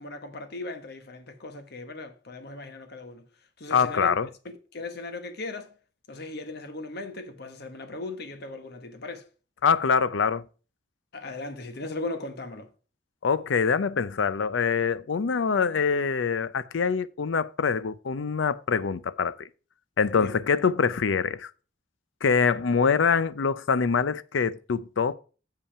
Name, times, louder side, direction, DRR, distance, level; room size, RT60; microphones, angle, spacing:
voice 1, 0.0-3.3 3.6-4.1 4.4-5.7 6.1-9.3 11.1-12.7 20.1-20.4, left 2 dB, 60° left, 1.2 m, -38 dB
voice 2, 3.7-4.3 9.6-10.4 13.2-19.5 20.0-21.5 22.2-25.2, left 5 dB, 90° left, 0.5 m, -24 dB
7.0 x 5.5 x 5.6 m
head